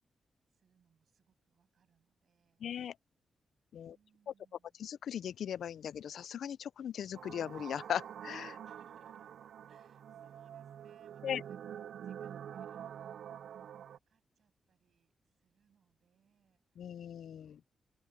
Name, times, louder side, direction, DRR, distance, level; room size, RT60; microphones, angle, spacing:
voice 1, 0.5-2.7 3.8-4.8 8.6-9.4 9.7-17.2, right 7 dB, 60° right, 7.4 m, -72 dB
voice 2, 2.6-2.9 3.7-4.0 4.8-8.6 11.2-11.4 16.8-17.6, left 9 dB, 75° left, 0.3 m, -38 dB
sound 1, 7.1-14.0, right 9 dB, 75° right, 0.4 m, -47 dB
open air
wide cardioid pair, 170°, 0 cm